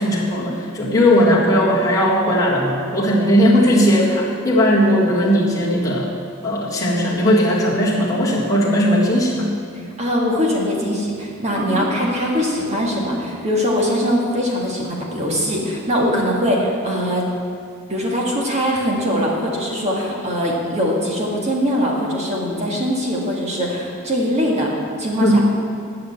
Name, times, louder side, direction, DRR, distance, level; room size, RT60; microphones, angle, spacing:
voice 1, 0.0-6.1 6.4-9.5 11.7-11.8 25.2-25.4, equal, 15° left, -7 dB, 1.8 m, -17 dB
voice 2, 9.7-17.2 17.9-25.4, equal, 30° right, -2 dB, 1.9 m, -21 dB
10.0 x 6.7 x 7.8 m, 2.3 s
head